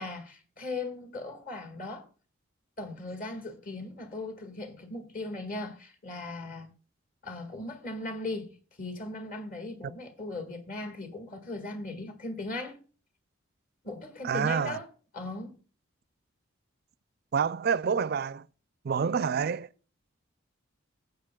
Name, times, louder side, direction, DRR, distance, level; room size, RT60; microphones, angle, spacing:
voice 1, 0.0-2.1 2.8-6.7 7.2-12.8 13.8-14.9 15.1-15.6, left 2 dB, 45° left, 1.8 m, -38 dB
voice 2, 14.2-14.8 17.3-18.5 18.8-19.7, right 6 dB, 50° right, 0.4 m, -27 dB
20.0 x 8.0 x 2.3 m
head